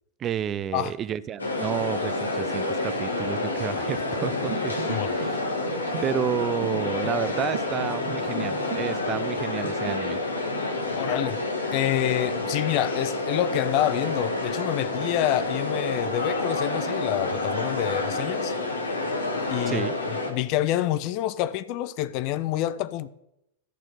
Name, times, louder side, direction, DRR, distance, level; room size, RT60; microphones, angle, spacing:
voice 1, 0.2-5.4 6.0-10.2 19.7-20.0, right 9 dB, 30° right, 0.3 m, -31 dB
sound 1, 1.4-20.3, left 2 dB, 80° left, 1.5 m, -28 dB
sound 2, 4.2-8.8 9.1-9.9, right 5 dB, 50° right, 1.5 m, -38 dB
voice 2, 11.0-11.4 11.7-18.5 19.5-23.1, left 13 dB, 45° left, 0.4 m, -27 dB
11.5 x 4.4 x 6.6 m
figure-of-eight pair, 90°, 0 cm